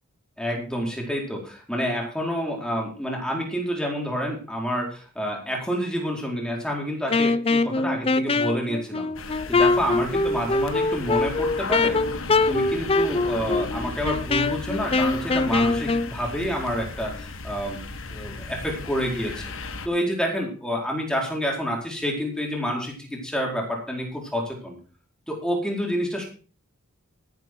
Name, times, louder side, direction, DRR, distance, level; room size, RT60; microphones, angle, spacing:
voice 1, 0.4-9.1 9.5-12.2 12.5-17.8 18.1-19.5 19.8-24.7 25.3-26.2, equal, 5° left, -1 dB, 4.4 m, -28 dB
Wind instrument woodwind instrument, 7.1-16.1, left 3 dB, 25° left, 0.5 m, -23 dB
sound 1, 9.2-19.9, left 3 dB, 65° left, 1.5 m, -36 dB
12.5 x 11.0 x 4.7 m, 0.39 s
head